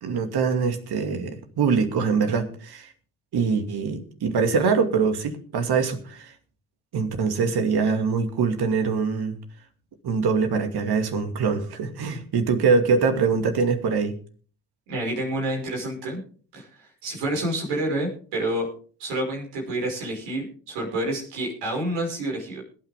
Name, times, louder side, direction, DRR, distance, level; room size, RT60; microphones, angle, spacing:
voice 1, 0.0-2.9 3.3-6.3 6.9-9.4 10.0-14.1, right 5 dB, 65° right, 6 dB, 2.4 m, -23 dB
voice 2, 14.9-16.2 16.5-18.7 19.0-22.6, right 1 dB, 85° right, 0 dB, 5.8 m, -28 dB
21.5 x 9.1 x 3.6 m, 0.43 s
hypercardioid pair, 45°, 42 cm